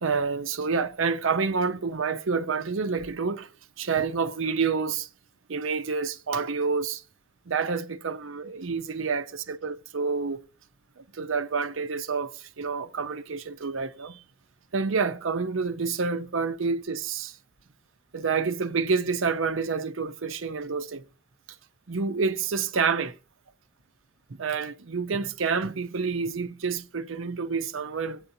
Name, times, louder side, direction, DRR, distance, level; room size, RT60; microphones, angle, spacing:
voice 1, 0.0-3.5 3.8-5.1 5.5-7.0 7.5-10.4 11.0-14.2 14.7-17.4 18.1-21.0 21.9-23.1 24.4-28.2, right 5 dB, 65° right, 0.7 m, -28 dB
23.5 x 8.8 x 2.7 m
head